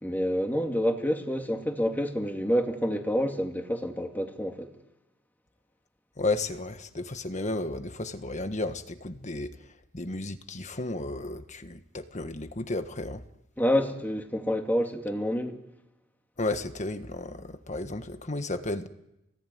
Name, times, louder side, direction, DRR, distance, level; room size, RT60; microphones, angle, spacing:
voice 1, 0.0-4.7 13.6-15.6, equal, 10° left, 2.4 m, -28 dB
voice 2, 6.2-9.6 9.9-13.2 16.4-18.9, left 2 dB, 40° left, 1.5 m, -33 dB
28.5 x 20.0 x 9.5 m
head